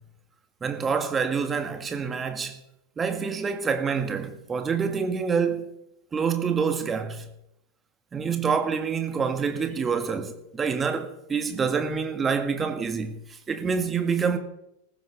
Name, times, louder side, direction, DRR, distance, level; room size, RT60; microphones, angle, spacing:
voice 1, 0.6-2.6 3.0-5.8 6.1-7.3 8.1-14.4, right 6 dB, 20° right, 1.8 m, -27 dB
18.5 x 15.0 x 3.6 m
figure-of-eight pair, 90°, 0 cm